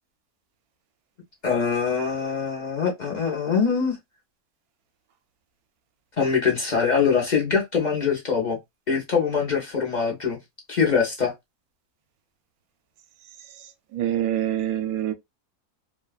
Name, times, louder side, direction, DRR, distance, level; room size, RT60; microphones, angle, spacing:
voice 1, 1.4-4.0 6.2-8.6 8.9-10.4 10.7-11.3, left 6 dB, 40° left, 0.7 m, -23 dB
voice 2, 13.9-15.1, right 11 dB, 75° right, 1.0 m, -25 dB
2.6 x 2.3 x 2.2 m
omnidirectional pair, 1.6 m